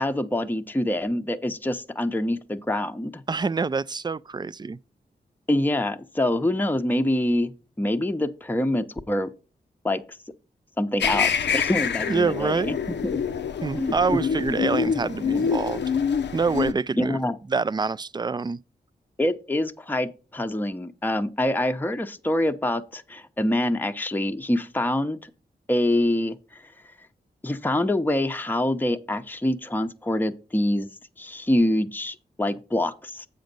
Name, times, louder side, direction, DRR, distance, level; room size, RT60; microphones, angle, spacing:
voice 1, 0.0-3.2 5.5-7.5 7.8-9.3 9.8-10.0 10.8-13.2 13.8-13.9 14.5-14.6 17.0-17.4 19.2-25.3 25.7-26.7 27.4-30.9 31.2-33.3, left 1 dB, 10° left, 0.7 m, -25 dB
voice 2, 3.3-4.8 12.1-12.8 13.6-15.8 16.3-17.2 17.5-18.6, right 4 dB, 25° right, 0.3 m, -26 dB
sound 1, 11.0-16.7, left 6 dB, 80° left, 0.5 m, -26 dB
7.8 x 5.2 x 5.3 m
cardioid pair, 45°, 18 cm